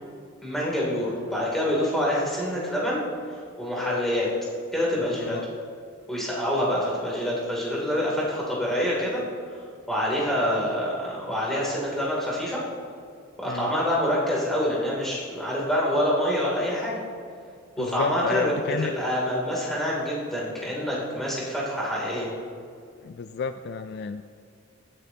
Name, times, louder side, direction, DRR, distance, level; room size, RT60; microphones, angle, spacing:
voice 1, 0.4-3.0 3.6-4.3 4.7-5.4 6.1-9.2 9.9-12.6 13.4-17.0 17.8-18.6 18.9-22.3, equal, ahead, -6 dB, 2.9 m, -26 dB
voice 2, 17.8-18.9 22.1-22.2 23.0-24.2, left 6 dB, 50° left, 10 dB, 0.3 m, -31 dB
17.0 x 10.0 x 2.9 m, 2.3 s
head